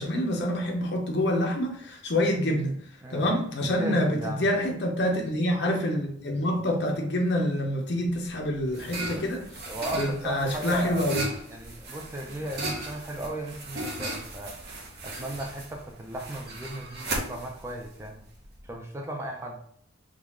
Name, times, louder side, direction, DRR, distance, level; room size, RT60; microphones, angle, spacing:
voice 1, 0.0-2.7 3.1-9.4 9.9-11.2, left 1 dB, 55° left, 1 dB, 0.7 m, -27 dB
voice 2, 3.6-4.4 9.7-11.1 11.5-14.8 15.0-18.2 18.6-19.6, right 1 dB, 15° right, 1 dB, 0.4 m, -36 dB
sound 1, 8.1-18.7, right 2 dB, 50° right, 0.7 m, -37 dB
3.7 x 2.4 x 3.0 m, 0.62 s
head